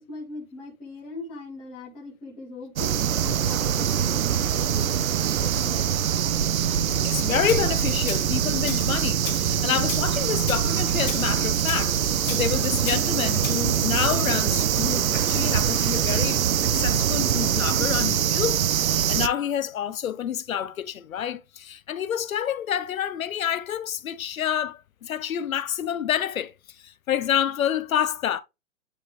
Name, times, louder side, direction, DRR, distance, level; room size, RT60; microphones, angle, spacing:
voice 1, 0.0-5.9, left 2 dB, ahead, 0.4 m, -41 dB
sound 1, 2.8-19.3, right 9 dB, 90° right, 0.8 m, -23 dB
voice 2, 7.0-26.5 26.8-28.4, left 9 dB, 90° left, 0.9 m, -28 dB
Tools, 7.5-7.6 8.1-8.3 8.7-8.9 9.2-9.5 9.9-10.1 10.5-10.7 11.1-11.3 11.7-11.9 12.3-12.5 12.9-13.0 13.4-13.6, left 12 dB, 30° left, 0.8 m, -35 dB
9.6 x 3.6 x 3.2 m
hypercardioid pair, 155°, 40 cm